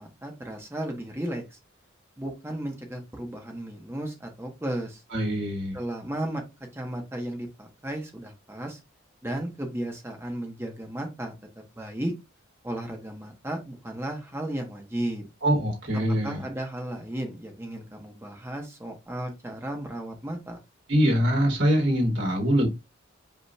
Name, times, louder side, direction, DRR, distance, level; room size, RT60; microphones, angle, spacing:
voice 1, 0.0-1.6 2.2-5.0 5.7-6.4 6.7-8.8 9.2-11.3 11.8-12.1 12.6-15.3 16.2-20.6, right 1 dB, 10° right, 2 dB, 1.2 m, -34 dB
voice 2, 5.1-5.8 15.4-16.4 20.9-22.7, equal, 60° right, -2 dB, 2.9 m, -23 dB
5.4 x 3.9 x 2.4 m, 0.23 s
head